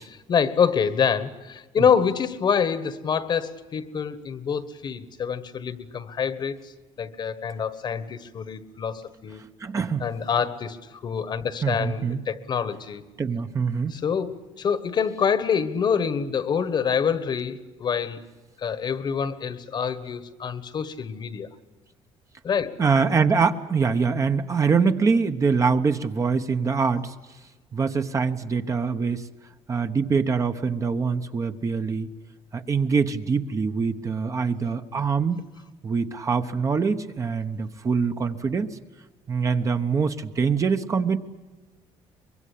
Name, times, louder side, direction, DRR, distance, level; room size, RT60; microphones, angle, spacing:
voice 1, 0.0-6.7 7.0-9.4 10.0-13.0 13.9-18.2 18.6-21.5 22.4-22.7, left 7 dB, 40° left, 14 dB, 1.4 m, -26 dB
voice 2, 9.6-10.0 11.6-12.2 13.2-14.0 22.8-27.1 27.7-29.3 29.7-32.1 32.5-35.4 35.8-38.8 39.3-41.2, right 5 dB, 25° right, 8 dB, 1.0 m, -24 dB
24.0 x 22.5 x 8.5 m, 1.2 s
cardioid pair, 150°, 12 cm